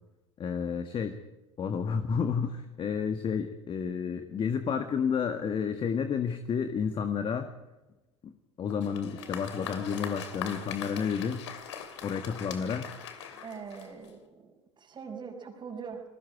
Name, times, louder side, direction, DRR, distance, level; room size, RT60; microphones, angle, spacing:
voice 1, 0.4-1.2 1.6-7.5 8.2-8.3 8.6-11.5 12.0-12.9, left 6 dB, 35° left, 8 dB, 1.6 m, -31 dB
Applause, 8.7-14.3, left 8 dB, 70° left, 2.6 m, -41 dB
voice 2, 13.4-14.2 14.8-16.0, right 6 dB, 30° right, -4 dB, 5.0 m, -41 dB
28.0 x 20.0 x 4.9 m, 1.1 s
figure-of-eight pair, 70°, 15 cm